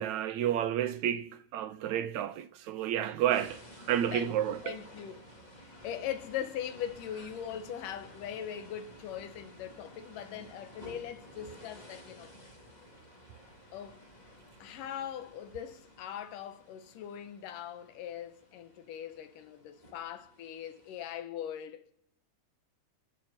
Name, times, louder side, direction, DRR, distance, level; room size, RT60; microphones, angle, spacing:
voice 1, 0.0-3.6 3.9-4.8, right 10 dB, 75° right, 2.0 m, -30 dB
sound 1, 3.3-21.2, equal, 15° left, 3.4 m, -54 dB
voice 2, 4.1-5.2 5.6-12.3 13.7-14.0 14.6-21.9, left 9 dB, 90° left, 2.8 m, -41 dB
30.0 x 11.0 x 4.4 m
omnidirectional pair, 3.6 m